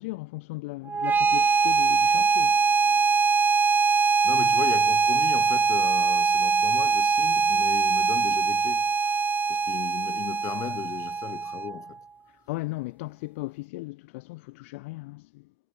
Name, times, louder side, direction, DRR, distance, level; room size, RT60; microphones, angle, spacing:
voice 1, 0.0-2.6 2.9-3.0 12.5-15.4, left 22 dB, 80° left, 0.7 m, -37 dB
sound 1, 0.9-11.9, right 5 dB, 25° right, 0.4 m, -22 dB
voice 2, 3.9-9.2 9.5-12.0, left 11 dB, 55° left, 1.0 m, -37 dB
hypercardioid pair, 60°, 7 cm